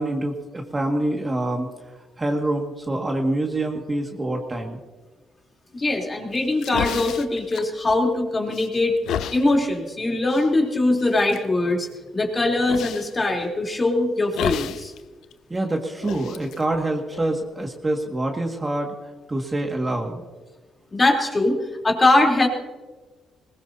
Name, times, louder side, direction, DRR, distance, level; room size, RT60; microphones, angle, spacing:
voice 1, 0.0-1.7 2.2-4.8 15.5-18.9 19.3-20.2, right 1 dB, 20° right, 1 dB, 2.0 m, -26 dB
voice 2, 5.7-9.0 9.3-11.9 12.1-14.9 20.9-21.6 21.8-22.5, left 2 dB, 25° left, 0 dB, 3.6 m, -21 dB
sound 1, 6.4-8.2 8.5-9.4 10.3-10.5 11.0-11.4 12.7-13.1 14.3-15.0 15.2-15.3 16.0-17.5, left 10 dB, 80° left, 0.6 m, -31 dB
21.5 x 19.5 x 2.8 m, 1.2 s
cardioid pair, 90°, 0 cm